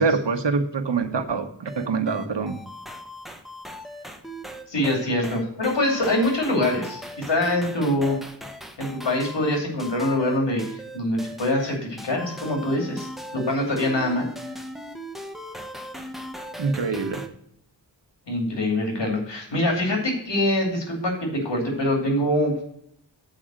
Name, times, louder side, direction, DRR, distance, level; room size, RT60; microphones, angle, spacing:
voice 1, 0.0-2.6 16.6-17.2, right 4 dB, 80° right, 8 dB, 1.1 m, -25 dB
sound 1, 1.7-17.3, equal, ahead, 0.9 m, -39 dB
voice 2, 4.7-8.2 8.8-14.3 18.3-22.6, left 1 dB, 80° left, 1 dB, 2.6 m, -24 dB
7.8 x 4.9 x 7.4 m, 0.70 s
wide cardioid pair, 65°, 42 cm